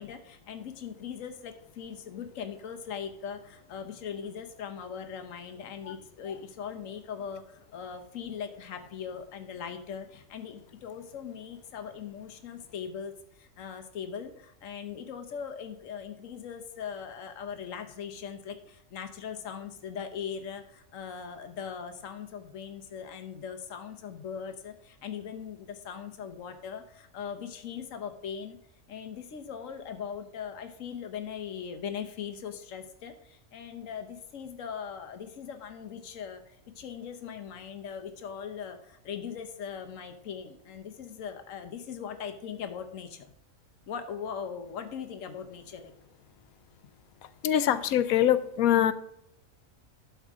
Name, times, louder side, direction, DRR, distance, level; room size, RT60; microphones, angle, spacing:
voice 1, 0.0-28.6 28.9-43.3 43.9-45.9, left 7 dB, 70° left, 7 dB, 1.3 m, -40 dB
voice 2, 47.4-48.9, left 11 dB, 85° left, 13 dB, 1.1 m, -23 dB
12.0 x 7.1 x 3.6 m, 0.75 s
omnidirectional pair, 1.5 m